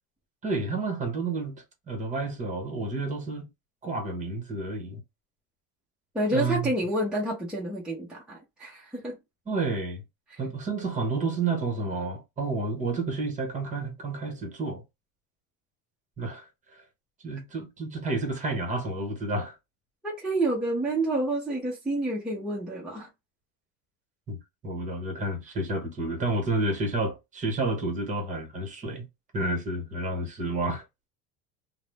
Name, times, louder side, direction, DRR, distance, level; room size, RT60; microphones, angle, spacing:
voice 1, 0.4-3.5 3.8-5.0 6.3-6.7 9.5-10.0 10.4-14.8 16.2-16.4 17.2-19.5 24.3-24.4 24.6-29.0 29.3-30.8, right 2 dB, 25° right, 1.0 m, -30 dB
voice 2, 6.1-9.2 10.3-10.4 20.0-23.1, right 1 dB, 5° right, 0.7 m, -29 dB
2.6 x 2.1 x 3.3 m
cardioid pair, 145°, 31 cm